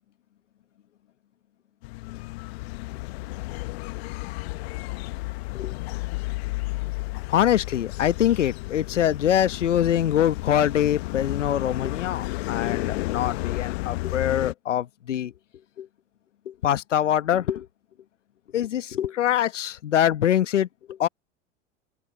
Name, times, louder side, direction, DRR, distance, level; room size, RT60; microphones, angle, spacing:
sound 1, 1.8-14.5, left 22 dB, 60° left, 1.3 m, -32 dB
voice 1, 7.3-15.3 15.8-15.9 16.5-17.7 18.5-21.1, left 10 dB, 80° left, 1.3 m, -24 dB
open air
hypercardioid pair, 90°, 36 cm